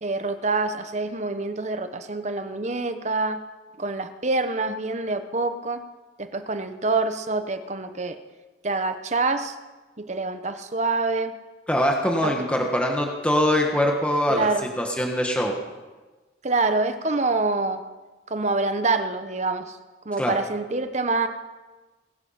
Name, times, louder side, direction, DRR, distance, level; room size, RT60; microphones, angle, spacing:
voice 1, 0.0-3.4 3.8-5.8 6.2-8.2 8.6-9.6 10.0-11.3 12.2-12.3 14.3-14.7 16.4-17.8 18.3-19.8 20.0-21.3, right 3 dB, 40° right, 9 dB, 0.9 m, -26 dB
voice 2, 11.7-14.5 14.8-15.5 20.2-20.3, equal, 5° left, 1 dB, 1.4 m, -23 dB
21.0 x 9.7 x 5.8 m, 1.2 s
head